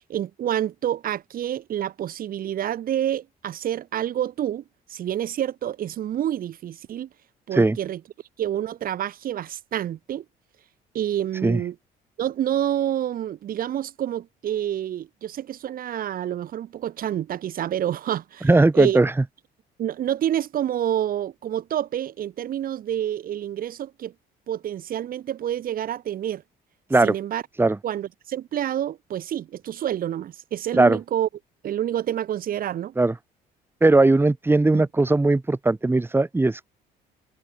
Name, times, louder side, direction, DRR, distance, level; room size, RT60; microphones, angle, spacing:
voice 1, 0.1-4.6 4.9-7.1 7.5-8.0 8.4-10.2 10.9-11.7 12.2-18.5 18.7-19.0 19.8-24.1 24.5-26.4 27.0-27.4 27.8-31.3 31.6-32.9 34.7-34.8, right 11 dB, 60° right, 2.9 m, -28 dB
voice 2, 18.4-19.1 26.9-27.1 27.6-27.8 30.7-31.0 33.0-33.1 33.8-36.7, right 2 dB, 15° right, 3.2 m, -18 dB
cardioid pair, 110°, 17 cm